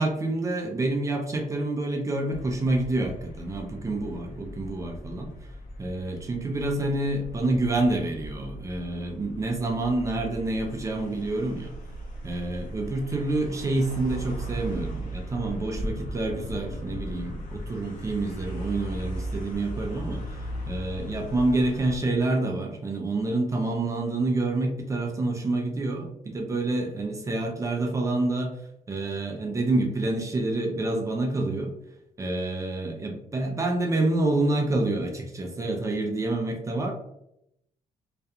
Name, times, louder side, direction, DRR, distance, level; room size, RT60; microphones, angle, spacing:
voice 1, 0.0-5.5 5.8-11.7 12.2-28.6 28.9-31.7 32.2-36.9, right 2 dB, 20° right, 2 dB, 0.4 m, -28 dB
sound 1, 2.3-22.0, equal, 75° left, 0.6 m, -38 dB
2.4 x 2.2 x 2.7 m, 0.79 s
cardioid pair, 150°, 14 cm